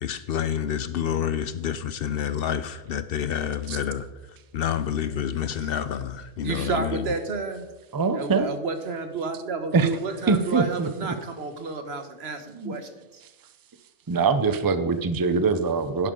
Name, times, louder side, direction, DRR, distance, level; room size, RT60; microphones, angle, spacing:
voice 1, 0.0-4.1 4.5-7.1, left 9 dB, 65° left, 13 dB, 0.7 m, -28 dB
voice 2, 6.4-7.7 8.1-13.2, right 4 dB, 65° right, 7 dB, 1.4 m, -31 dB
voice 3, 7.9-8.5 9.7-9.9 10.3-11.1 12.5-12.8 14.1-16.1, right 4 dB, 25° right, 11 dB, 0.5 m, -23 dB
11.0 x 10.5 x 3.8 m, 1.1 s
omnidirectional pair, 1.2 m